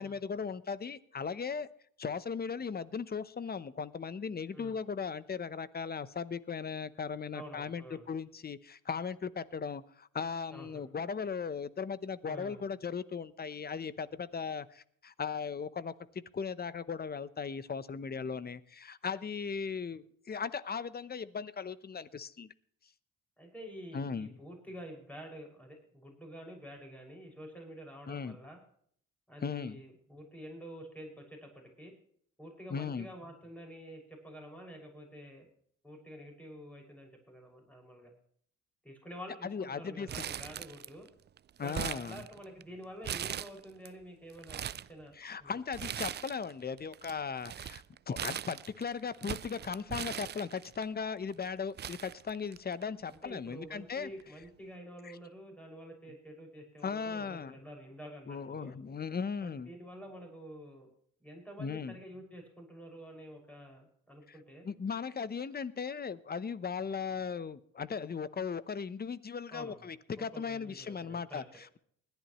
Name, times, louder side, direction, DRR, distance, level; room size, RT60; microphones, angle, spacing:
voice 1, 0.0-1.7 2.0-15.9 16.3-22.5 23.9-24.3 28.1-28.4 29.4-29.8 32.7-33.1 39.4-40.1 41.6-42.2 45.1-54.1 55.0-55.2 56.8-57.5 58.3-59.7 61.6-62.0 64.3-64.4 64.6-71.8, left 6 dB, 30° left, 16 dB, 0.9 m, -37 dB
voice 2, 7.3-8.1 10.5-10.8 12.2-12.6 23.4-28.6 29.3-31.9 32.4-35.5 35.8-38.1 38.8-41.1 41.6-45.1 45.4-45.5 53.1-58.7 59.4-60.9 61.2-64.7 69.5-69.9 70.2-71.4, equal, 5° left, 2 dB, 6.0 m, -48 dB
Crumpling crinkling, 40.1-41.1 41.4-42.6 43.0-43.9 44.3-44.9 45.7-46.5 46.8-50.8 51.4-51.5 51.8-52.8 53.1-53.2 54.2-54.4, right 9 dB, 35° right, 0.4 m, -40 dB
20.5 x 11.5 x 3.1 m, 0.62 s
cardioid pair, 90°, 30 cm